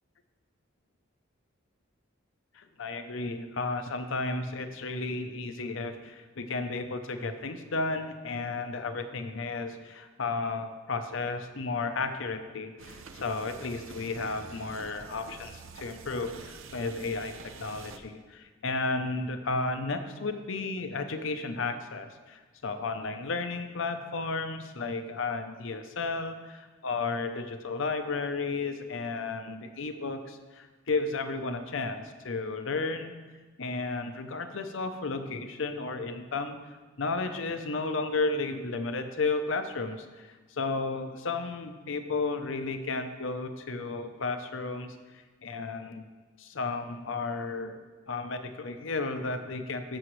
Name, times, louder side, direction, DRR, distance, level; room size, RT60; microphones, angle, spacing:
voice 1, 2.6-33.1 33.6-36.6 37.0-45.0 45.4-46.0 46.4-47.8 48.1-50.0, left 3 dB, 70° left, 8 dB, 0.7 m, -33 dB
sound 1, 12.8-18.0, right 4 dB, 80° right, 0.6 m, -47 dB
14.0 x 7.0 x 3.2 m, 1.3 s
head